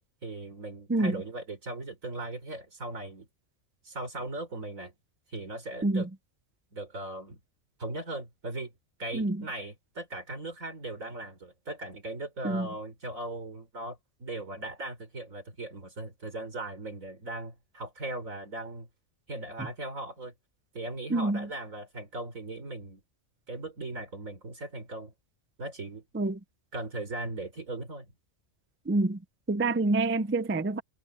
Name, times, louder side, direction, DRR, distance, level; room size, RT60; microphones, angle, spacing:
voice 1, 0.0-3.3 3.8-4.9 5.3-6.1 6.7-7.4 7.8-8.7 9.0-18.9 19.3-20.3 20.7-23.0 23.5-25.1 25.6-26.0 26.7-28.1, right 2 dB, 90° right, 4.5 m, -38 dB
voice 2, 9.1-9.4 12.4-12.7 21.1-21.5 26.1-26.4 28.9-29.2 29.5-30.8, right 2 dB, 20° right, 0.4 m, -27 dB
omnidirectional pair, 1.4 m